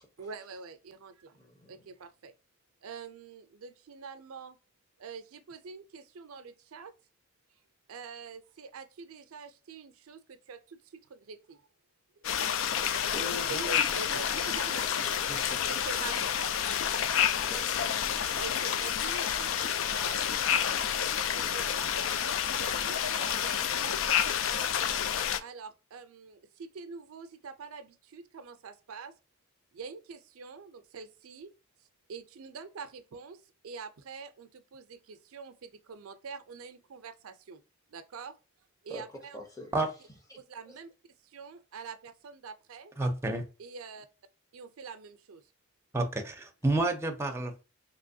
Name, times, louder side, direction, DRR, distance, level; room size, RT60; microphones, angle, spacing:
voice 1, 0.2-1.4 1.7-2.3 2.8-4.6 5.0-6.9 7.9-10.8 11.1-11.6 12.9-15.3 15.7-16.8 18.4-22.1 22.5-24.8 25.4-29.1 29.7-31.5 32.1-33.4 33.6-37.6 37.9-38.3 38.8-39.4 40.4-40.9 41.3-42.9 43.6-44.1 44.5-45.4, right 5 dB, 85° right, 0.5 m, -45 dB
voice 2, 1.3-1.8 12.3-13.9 15.2-15.8 17.0-17.9 38.9-39.7 40.3-40.4 40.7-40.8, left 1 dB, 15° left, 0.8 m, -45 dB
sound 1, 12.2-25.4, left 9 dB, 65° left, 0.3 m, -29 dB
voice 3, 43.0-43.4 45.9-47.6, right 2 dB, 10° right, 0.5 m, -29 dB
3.3 x 3.0 x 2.6 m
head